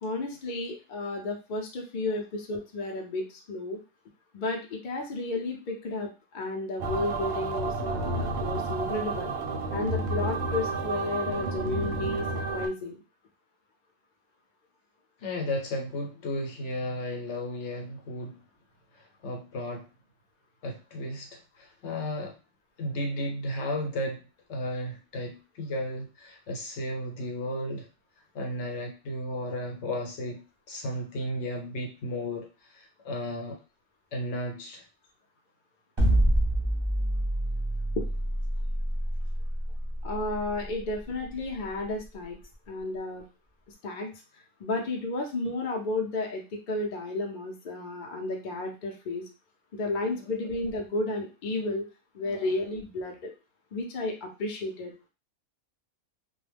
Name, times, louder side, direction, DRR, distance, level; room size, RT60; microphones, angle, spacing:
voice 1, 0.0-3.8 4.3-9.3 9.7-13.0 40.0-42.4 42.7-43.2 43.8-44.1 44.6-49.3 49.7-51.9 52.1-53.3 53.7-54.9, left 2 dB, 50° left, 1 dB, 0.6 m, -32 dB
sound 1, 6.8-12.7, right 3 dB, 65° right, 0.7 m, -31 dB
voice 2, 15.2-18.4 19.2-19.9 20.6-22.4 22.8-24.2 24.5-27.9 28.3-30.4 30.7-32.5 32.7-33.6 34.1-34.8 40.6-40.7 50.1-50.2 52.2-52.5, left 1 dB, 65° left, 1 dB, 1.0 m, -34 dB
sound 2, 36.0-42.1, right 1 dB, 25° right, 0.7 m, -27 dB
2.3 x 2.1 x 3.3 m, 0.30 s
omnidirectional pair, 1.3 m